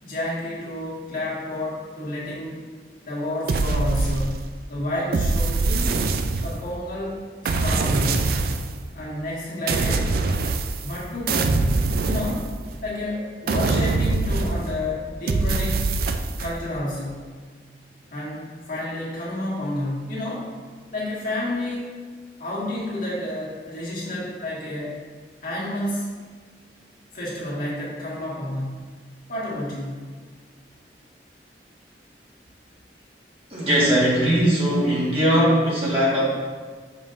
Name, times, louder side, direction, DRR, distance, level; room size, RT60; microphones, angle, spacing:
voice 1, 0.0-2.5 3.0-6.0 6.4-8.4 8.9-10.1 10.8-12.4 12.8-15.9 16.4-17.4 18.1-20.5 20.9-22.0 22.4-25.0 25.4-26.1 27.1-28.9 29.3-30.0, left 1 dB, 50° left, -7 dB, 1.8 m, -30 dB
sound 1, 3.5-4.6 5.1-6.7 7.4-8.8 9.7-11.0 11.3-12.9 13.5-14.8 15.3-16.5, right 3 dB, 55° right, 0.4 m, -23 dB
voice 2, 33.5-36.2, equal, 30° right, -8 dB, 1.6 m, -20 dB
7.2 x 5.3 x 2.6 m, 1.5 s
head